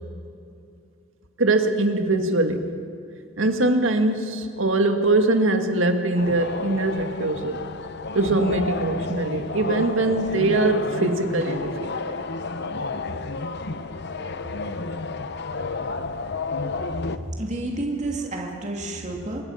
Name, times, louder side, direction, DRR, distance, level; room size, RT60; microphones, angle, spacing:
voice 1, 1.4-2.7 3.4-7.6 8.1-12.1, right 2 dB, 70° right, 5 dB, 2.0 m, -22 dB
sound 1, 6.2-17.2, left 3 dB, 55° left, 0.9 m, -31 dB
voice 2, 17.4-19.4, right 2 dB, 35° right, 0 dB, 2.6 m, -30 dB
26.0 x 22.5 x 5.8 m, 2.5 s
head